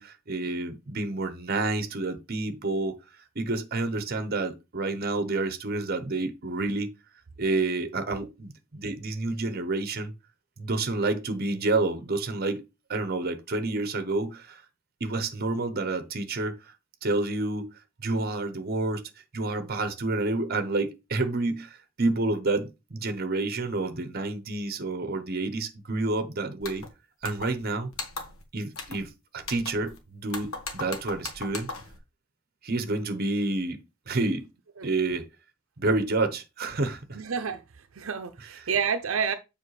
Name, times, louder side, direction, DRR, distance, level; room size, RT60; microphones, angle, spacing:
voice 1, 0.0-3.0 3.3-6.9 7.4-10.1 10.6-12.6 12.9-14.6 15.0-16.6 17.0-26.8 27.2-27.9 28.5-31.7 32.6-33.8 34.1-34.5 34.8-35.3 35.8-37.2 38.4-38.7, right 2 dB, 50° right, 0.9 m, -29 dB
sound 1, 26.6-26.9 27.2-27.7 27.9-28.4 28.7-29.1 29.4-30.0 30.3-32.0, left 3 dB, 90° left, 1.3 m, -38 dB
voice 2, 37.1-37.6 38.0-39.3, right 6 dB, 80° right, 0.7 m, -29 dB
7.3 x 5.1 x 3.2 m
head